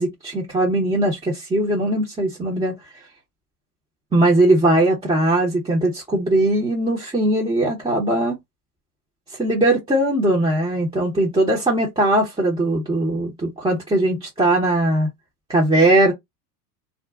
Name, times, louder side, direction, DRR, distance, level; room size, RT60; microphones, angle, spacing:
voice 1, 0.0-2.8 4.1-8.4 9.4-15.1 15.5-16.1, right 1 dB, 10° right, 0.9 m, -19 dB
2.5 x 2.1 x 3.6 m
hypercardioid pair, 100°, 47 cm